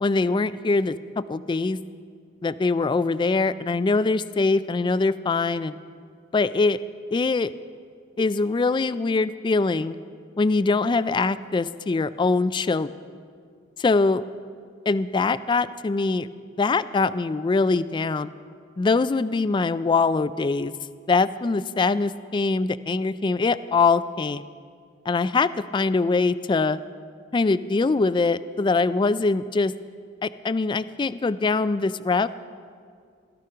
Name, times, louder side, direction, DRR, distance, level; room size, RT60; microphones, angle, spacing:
voice 1, 0.0-1.8 2.4-5.8 6.3-6.8 7.1-7.5 8.2-10.0 10.4-12.9 13.8-14.2 14.9-16.3 16.6-18.3 18.8-20.7 21.1-24.4 25.1-26.8 27.3-29.7 30.2-32.3, left 3 dB, 25° left, 15 dB, 0.3 m, -23 dB
17.0 x 13.0 x 5.6 m, 2.2 s
head